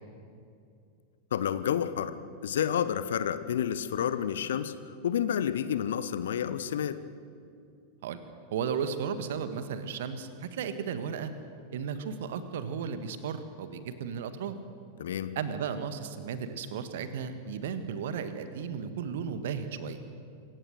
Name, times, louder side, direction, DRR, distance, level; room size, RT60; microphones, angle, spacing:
voice 1, 1.3-2.1 2.4-7.0 15.0-15.3, left 9 dB, 60° left, 13 dB, 1.0 m, -30 dB
voice 2, 8.5-11.3 11.7-14.5 15.3-20.0, right 7 dB, 55° right, 10 dB, 1.5 m, -34 dB
26.5 x 16.0 x 6.5 m, 2.4 s
figure-of-eight pair, 90°, 0 cm